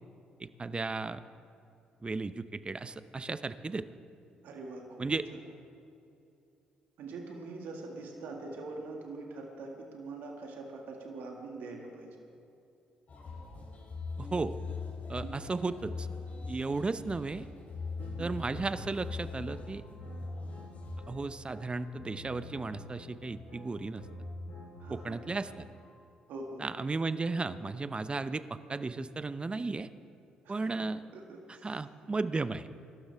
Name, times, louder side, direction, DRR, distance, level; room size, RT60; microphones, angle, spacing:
voice 1, 0.4-1.2 2.0-3.8 5.0-5.2 14.2-14.5 15.1-16.1 16.5-17.4 18.2-19.8 21.1-24.0 24.9-25.6 26.6-29.9 30.5-31.0 31.6-32.7, right 3 dB, 30° right, 13 dB, 0.8 m, -34 dB
voice 2, 4.4-4.8 5.1-5.2 7.0-12.1 15.2-15.3 18.0-18.3 24.8-25.4 26.3-26.6 30.4-30.8 31.1-31.8, right 3 dB, 70° right, 0 dB, 2.1 m, -43 dB
sound 1, 13.1-21.1, left 4 dB, 45° left, 3.7 m, -42 dB
sound 2, 18.0-25.9, left 1 dB, 85° left, 4.4 m, -46 dB
24.5 x 13.0 x 3.6 m, 2.6 s
hypercardioid pair, 50°, 3 cm